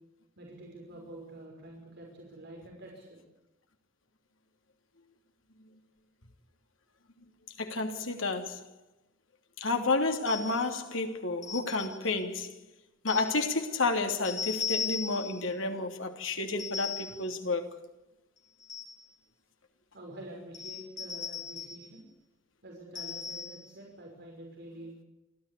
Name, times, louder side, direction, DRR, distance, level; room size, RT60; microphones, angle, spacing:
voice 1, 0.4-3.2 19.9-22.1 22.6-24.9, right 1 dB, 60° right, 5.8 m, -47 dB
voice 2, 7.6-8.7 9.6-12.5 13.0-17.8, left 3 dB, 80° left, 3.1 m, -30 dB
sound 1, 10.3-10.7 11.4-12.1 13.1-13.4 14.2-15.4 16.6-17.2 18.4-19.0 20.5-21.9 22.9-23.7, left 6 dB, 40° left, 6.2 m, -37 dB
28.5 x 13.5 x 8.4 m
head